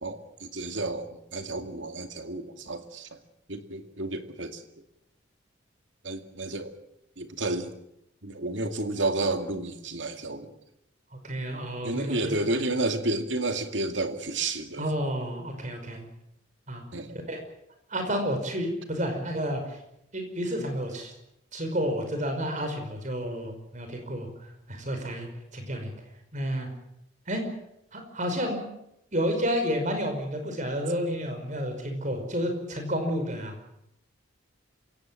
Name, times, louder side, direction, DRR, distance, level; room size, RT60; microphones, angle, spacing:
voice 1, 0.0-3.2 3.5-4.6 6.0-6.7 7.2-7.7 8.2-10.5 11.8-14.9 16.9-17.2, right 2 dB, 70° right, 7 dB, 2.3 m, -31 dB
voice 2, 11.2-12.3 14.8-16.0 16.7-16.8 17.3-17.4 17.9-19.8 20.1-21.1 21.5-25.9 26.3-26.7 27.3-27.4 27.9-28.7 29.1-33.5, equal, 40° right, 5 dB, 5.3 m, -30 dB
27.0 x 16.5 x 7.7 m, 0.79 s
head